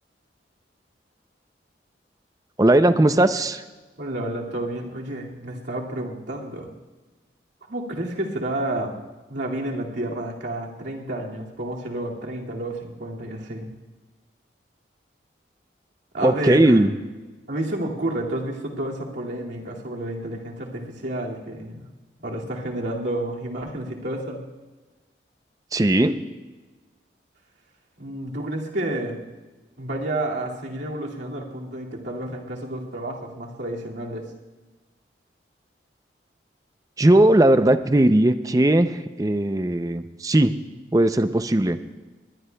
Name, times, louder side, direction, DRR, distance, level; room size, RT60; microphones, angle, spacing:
voice 1, 2.6-3.6 16.2-16.9 25.7-26.2 37.0-40.6 40.9-41.8, right 1 dB, 20° right, 11 dB, 0.5 m, -18 dB
voice 2, 4.0-6.7 7.7-9.0 9.3-13.7 16.1-16.8 17.5-21.9 22.2-24.4 28.0-29.2 29.8-34.3, right 1 dB, 80° right, -2 dB, 2.3 m, -30 dB
21.0 x 20.5 x 2.3 m, 1.2 s
head